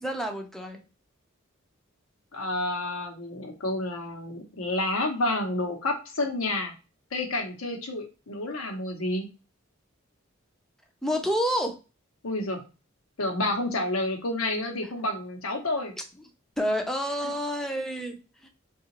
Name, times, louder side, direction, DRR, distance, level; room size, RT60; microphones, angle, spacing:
voice 1, 0.0-0.8 11.0-11.8 16.6-18.5, equal, ahead, 3 dB, 0.5 m, -29 dB
voice 2, 2.3-6.7 7.1-9.3 12.2-12.6 13.2-15.9 17.2-17.3, left 2 dB, 80° left, 3 dB, 0.9 m, -29 dB
3.7 x 2.4 x 2.9 m, 0.31 s
head